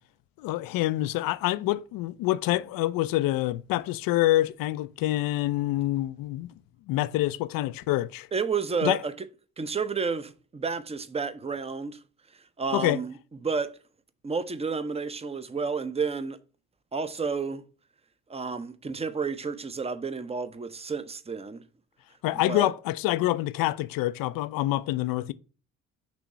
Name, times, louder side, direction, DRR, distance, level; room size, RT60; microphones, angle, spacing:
voice 1, 0.4-6.5 6.9-8.3 8.8-9.0 12.7-13.0 22.2-25.3, left 16 dB, 65° left, 0.5 m, -26 dB
voice 2, 8.3-9.3 9.6-12.0 12.6-13.1 13.4-13.8 14.2-16.4 16.9-17.6 18.3-21.6 22.4-22.7, right 5 dB, 15° right, 0.7 m, -31 dB
6.1 x 3.0 x 5.5 m
hypercardioid pair, 50°, 38 cm